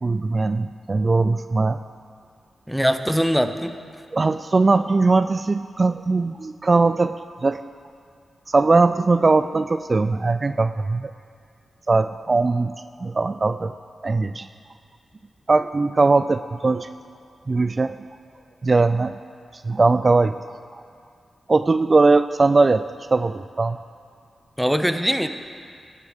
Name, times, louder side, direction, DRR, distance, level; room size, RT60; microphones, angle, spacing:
voice 1, 0.0-1.8 4.1-7.6 8.5-11.1 11.9-12.7 13.0-13.7 14.0-14.5 15.5-16.9 17.5-18.0 18.6-19.1 19.5-20.4 20.7-20.8 21.5-22.8 23.1-23.8, right 3 dB, 45° right, 11 dB, 0.3 m, -20 dB
voice 2, 2.7-3.7 24.6-25.3, equal, ahead, 9 dB, 0.8 m, -21 dB
16.5 x 11.5 x 3.6 m, 2.2 s
cardioid pair, 50°, 0 cm